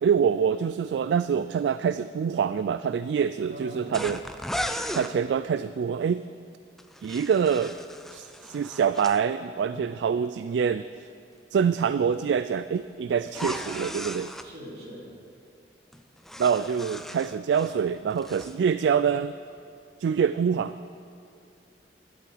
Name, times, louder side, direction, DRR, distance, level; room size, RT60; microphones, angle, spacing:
voice 1, 0.0-4.2 4.9-6.3 7.0-7.8 8.1-11.1 11.5-14.3 16.4-19.3 20.0-20.7, right 7 dB, 80° right, 13 dB, 0.3 m, -25 dB
voice 2, 3.5-4.0 9.7-10.0 14.4-15.0, equal, 60° right, -4 dB, 3.4 m, -42 dB
sound 1, 3.9-5.1 6.8-9.2 13.3-14.5 15.9-17.8 18.1-18.6, equal, ahead, 0.4 m, -36 dB
11.0 x 8.4 x 7.8 m, 2.6 s
head